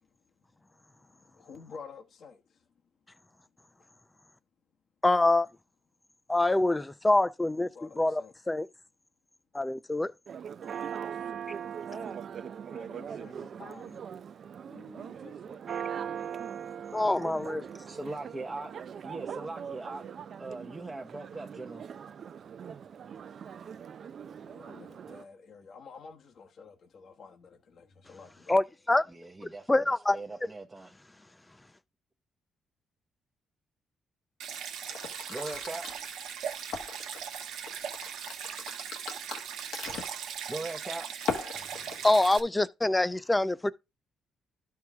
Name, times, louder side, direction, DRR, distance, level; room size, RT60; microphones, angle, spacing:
voice 1, 1.4-2.4 7.7-8.3 11.9-12.2 12.7-14.0 14.7-15.6 24.4-28.5, left 5 dB, 60° left, 1.2 m, -50 dB
voice 2, 5.0-5.5 6.3-8.7 9.5-10.1 16.9-17.7 28.5-29.0 29.7-30.2 42.0-43.7, left 2 dB, 15° left, 0.5 m, -25 dB
Church bell, 10.3-25.2, right 8 dB, 55° right, 0.4 m, -40 dB
voice 3, 17.6-18.7 19.0-20.1 20.4-21.8 29.1-29.7 30.1-30.9 35.3-35.9 40.5-41.1, right 2 dB, 15° right, 0.8 m, -40 dB
Stream, 34.4-42.4, right 8 dB, 85° right, 1.0 m, -39 dB
sound 1, 34.9-37.2 37.7-40.2 41.2-42.3, left 6 dB, 80° left, 1.3 m, -38 dB
12.0 x 4.7 x 3.5 m
cardioid pair, 90°, 0 cm